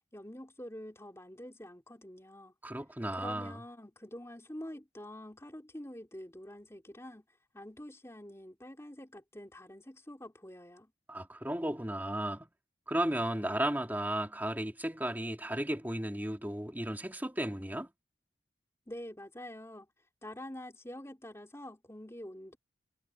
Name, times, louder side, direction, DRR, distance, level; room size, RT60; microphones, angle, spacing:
voice 1, 0.1-2.5 3.1-7.3 7.5-10.9 18.9-19.9 20.2-22.6, left 1 dB, 15° left, 3.9 m, -46 dB
voice 2, 2.6-3.5 11.1-12.5 12.9-17.9, right 1 dB, 10° right, 2.8 m, -34 dB
head